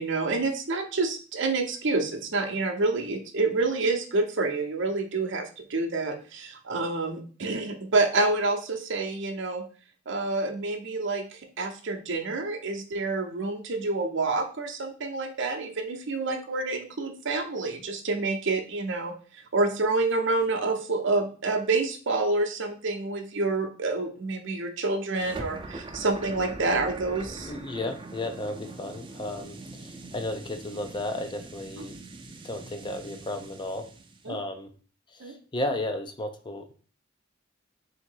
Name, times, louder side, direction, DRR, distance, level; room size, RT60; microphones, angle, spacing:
voice 1, 0.0-9.6 10.1-19.1 19.5-27.5 34.2-34.4 35.2-35.3, right 3 dB, 65° right, 4 dB, 0.7 m, -28 dB
sound 1, 25.1-34.3, right 2 dB, 25° right, 0.5 m, -42 dB
voice 2, 27.5-32.0 32.4-33.9 34.3-34.7 35.1-36.7, left 1 dB, 25° left, 6 dB, 0.5 m, -34 dB
3.7 x 2.8 x 4.5 m, 0.40 s
head